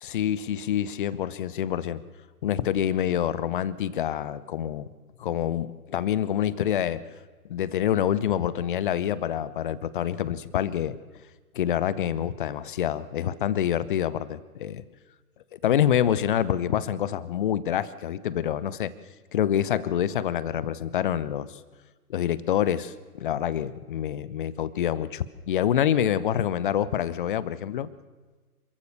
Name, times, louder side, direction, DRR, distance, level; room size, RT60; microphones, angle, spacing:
voice 1, 0.0-2.0 2.4-4.9 5.2-7.0 7.5-11.0 11.5-14.8 15.5-18.9 19.3-21.6 22.1-27.9, left 10 dB, 35° left, 18 dB, 0.9 m, -26 dB
27.0 x 15.0 x 6.8 m, 1.3 s
figure-of-eight pair, 130°, 45 cm